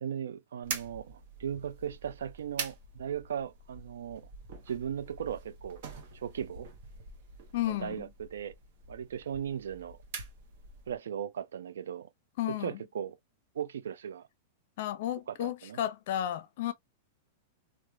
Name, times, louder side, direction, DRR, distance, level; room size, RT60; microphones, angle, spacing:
voice 1, 0.0-4.3 4.7-5.8 6.1-6.7 7.7-8.5 8.9-10.0 10.9-12.1 12.5-13.2 13.5-14.3 15.3-15.8, right 8 dB, 85° right, 0.3 m, -37 dB
sound 1, 0.6-11.0, right 5 dB, 65° right, 0.9 m, -45 dB
voice 2, 7.5-8.1 12.4-12.8 14.8-16.7, left 12 dB, 65° left, 0.5 m, -33 dB
3.0 x 2.4 x 2.2 m
hypercardioid pair, 125°, 0 cm